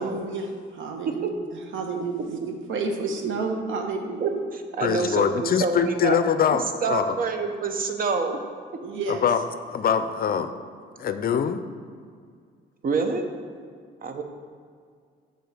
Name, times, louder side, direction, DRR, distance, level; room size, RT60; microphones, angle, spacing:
voice 1, 0.0-4.4 8.8-9.3, right 3 dB, 80° right, 3 dB, 1.1 m, -30 dB
voice 2, 4.2-6.2 6.8-8.4 12.8-13.2 14.0-14.2, right 4 dB, 45° right, 6 dB, 0.9 m, -26 dB
voice 3, 4.8-7.2 9.1-10.5 11.0-11.6, left 7 dB, 50° left, 10 dB, 0.5 m, -24 dB
6.6 x 4.2 x 6.5 m, 2.1 s
cardioid pair, 90°, 20 cm